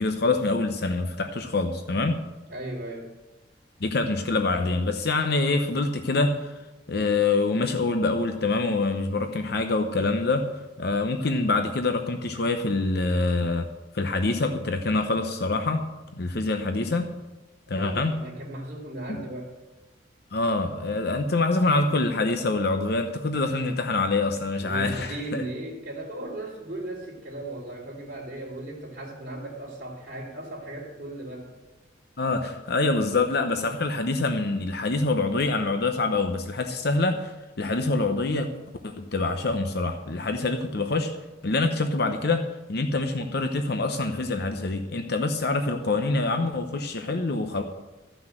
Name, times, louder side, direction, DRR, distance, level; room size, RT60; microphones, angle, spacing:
voice 1, 0.0-2.2 3.8-6.5 6.9-13.7 13.9-15.9 16.1-17.2 17.7-18.2 19.1-19.2 20.3-25.4 32.2-38.5 38.8-41.1 41.4-42.4 42.7-47.6, left 3 dB, 60° left, 6 dB, 0.8 m, -25 dB
voice 2, 2.5-3.1 17.7-19.5 24.6-31.5, right 1 dB, 50° right, -10 dB, 3.1 m, -37 dB
13.5 x 6.1 x 7.7 m, 1.1 s
head